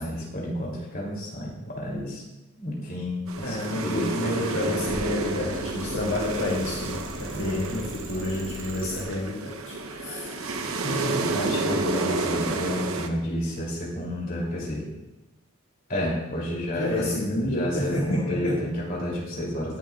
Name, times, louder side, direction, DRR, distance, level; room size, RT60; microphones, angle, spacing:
voice 1, 0.0-2.2 2.6-4.8 7.3-7.6 9.9-14.9 15.9-19.8, left 1 dB, 40° left, -4 dB, 3.1 m, -31 dB
sound 1, 3.3-13.1, right 3 dB, 75° right, 0.9 m, -30 dB
voice 2, 3.4-10.3 16.7-18.7, left 1 dB, 65° left, -5 dB, 1.6 m, -29 dB
sound 2, 4.7-9.1, right 1 dB, 45° right, 2.0 m, -39 dB
20.0 x 7.3 x 2.4 m, 1.0 s
head